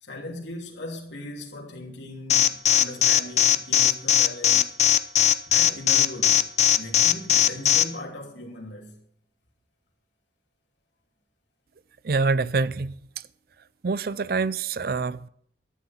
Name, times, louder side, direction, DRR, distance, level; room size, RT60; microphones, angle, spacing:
voice 1, 0.0-4.8 5.5-6.4 6.8-9.0, left 1 dB, 85° left, 3.1 m, -38 dB
Alarm, 2.3-7.8, left 10 dB, 40° left, 0.7 m, -18 dB
voice 2, 12.0-12.9 13.8-15.3, right 4 dB, 55° right, 0.5 m, -25 dB
14.5 x 12.0 x 4.4 m
head